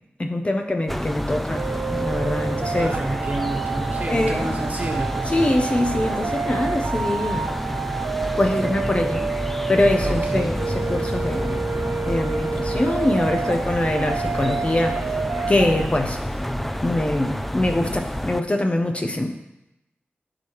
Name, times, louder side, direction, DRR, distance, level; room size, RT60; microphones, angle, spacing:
voice 1, 0.2-2.9 4.1-4.6 5.3-7.5 8.4-9.3 9.7-11.6 12.1-15.0 15.5-16.2 16.8-19.3, left 1 dB, 30° left, 4 dB, 0.8 m, -23 dB
sound 1, 0.9-18.4, equal, 5° left, 0.4 m, -29 dB
sound 2, 1.5-15.9, right 6 dB, 85° right, 0.3 m, -29 dB
voice 2, 2.8-5.4 10.0-10.5, right 2 dB, 40° right, 1 dB, 1.4 m, -30 dB
14.0 x 4.7 x 3.1 m, 0.92 s
wide cardioid pair, 75°, 4 cm